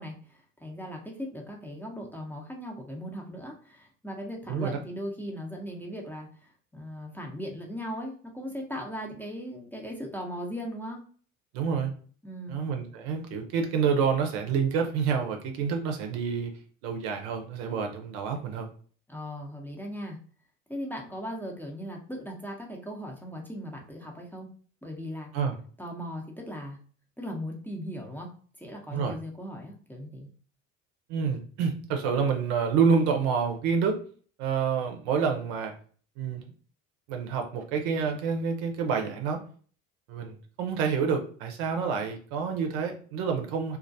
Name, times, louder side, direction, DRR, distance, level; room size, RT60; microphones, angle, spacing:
voice 1, 0.0-11.0 12.2-12.6 19.1-20.2 20.7-24.5 24.8-25.3 25.8-26.8 27.2-28.3 28.6-30.3, equal, 5° left, -1 dB, 0.6 m, -38 dB
voice 2, 4.5-4.8 11.5-11.9 12.5-16.5 16.8-18.7 25.3-25.6 28.9-29.1 31.1-34.0 34.4-35.7 36.2-36.4 37.1-39.4 40.1-43.8, right 6 dB, 65° right, 3 dB, 0.7 m, -28 dB
2.4 x 2.2 x 2.6 m, 0.43 s
hypercardioid pair, 65°, 40 cm